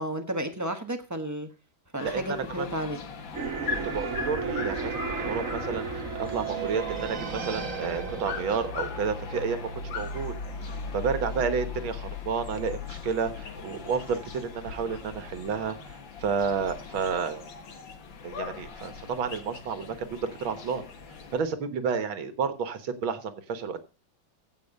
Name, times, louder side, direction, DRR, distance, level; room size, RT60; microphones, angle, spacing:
voice 1, 0.0-1.5 1.9-3.0, right 1 dB, 10° right, 5 dB, 1.0 m, -32 dB
sound 1, 2.0-21.4, left 5 dB, 70° left, 2.2 m, -39 dB
voice 2, 2.0-2.7 3.8-10.3 10.6-17.5 18.2-20.8 21.3-23.8, right 6 dB, 80° right, 9 dB, 2.1 m, -31 dB
sound 2, 3.3-10.1, right 5 dB, 45° right, 1.5 m, -34 dB
16.0 x 5.5 x 5.3 m, 0.34 s
omnidirectional pair, 2.2 m